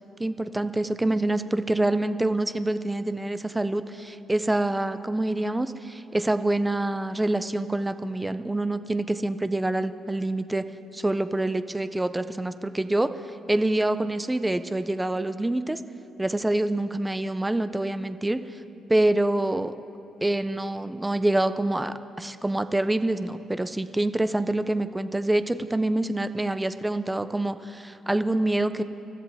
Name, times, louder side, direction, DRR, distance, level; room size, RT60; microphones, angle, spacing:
voice 1, 0.2-10.6 10.9-13.1 13.5-15.8 16.2-18.6 18.9-19.7 20.2-28.8, right 1 dB, 10° right, 11 dB, 0.4 m, -26 dB
26.5 x 13.5 x 3.4 m, 3.0 s
cardioid pair, 170°, 0 cm